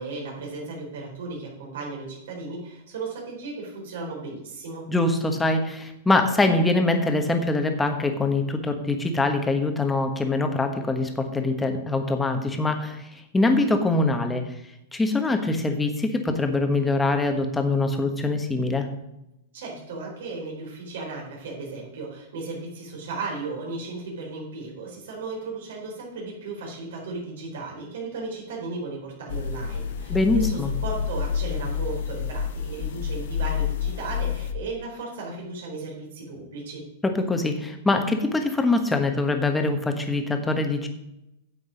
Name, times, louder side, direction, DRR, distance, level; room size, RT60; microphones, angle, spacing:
voice 1, 0.0-4.9 19.5-36.8, right 3 dB, 80° right, -2 dB, 4.4 m, -35 dB
voice 2, 4.9-13.1 13.3-14.5 14.9-18.9 30.1-30.7 37.0-40.9, left 2 dB, 10° left, 5 dB, 1.2 m, -23 dB
sound 1, 29.3-34.5, left 7 dB, 65° left, 0.9 m, -29 dB
9.8 x 7.8 x 5.1 m, 0.86 s
supercardioid pair, 155°, 0 cm